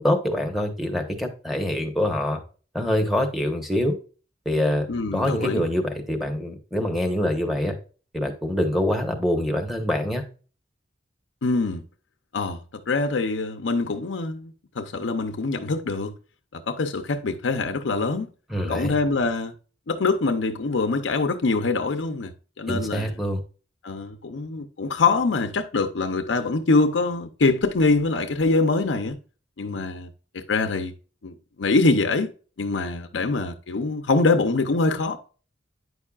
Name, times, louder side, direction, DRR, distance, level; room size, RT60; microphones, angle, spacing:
voice 1, 0.0-2.4 2.7-4.0 4.4-4.9 5.1-7.7 8.1-10.2 18.5-19.0 22.7-23.4, left 1 dB, ahead, 1.0 m, -25 dB
voice 2, 4.9-5.7 11.4-11.8 12.3-16.1 16.5-18.3 18.7-19.5 19.9-23.2 23.8-29.2 29.6-30.9 31.2-32.3 32.6-35.2, left 3 dB, 80° left, 0.6 m, -24 dB
9.3 x 5.5 x 2.4 m
head